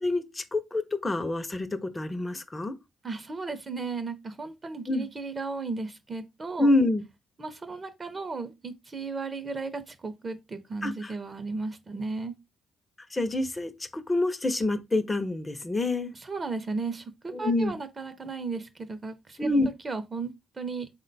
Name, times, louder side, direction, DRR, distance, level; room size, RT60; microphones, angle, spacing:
voice 1, 0.0-2.7 4.9-5.1 6.6-7.0 10.8-11.1 13.1-16.1 17.3-17.7 19.4-19.7, left 2 dB, 20° left, 0.5 m, -27 dB
voice 2, 3.0-6.7 7.4-12.3 16.2-19.6 19.8-20.9, right 4 dB, 30° right, 0.5 m, -35 dB
3.7 x 2.1 x 3.9 m
cardioid pair, 90°, 0 cm